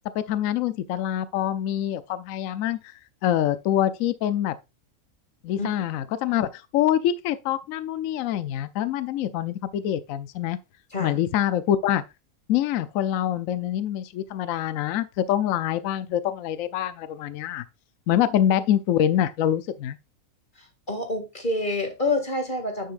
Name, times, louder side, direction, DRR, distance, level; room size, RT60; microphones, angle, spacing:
voice 1, 0.1-4.6 5.4-10.6 11.0-12.0 12.5-17.7 18.1-20.0, left 11 dB, 75° left, 1.0 m, -25 dB
voice 2, 20.6-22.9, left 2 dB, 35° left, 2.2 m, -28 dB
9.5 x 6.6 x 2.5 m
omnidirectional pair, 1.5 m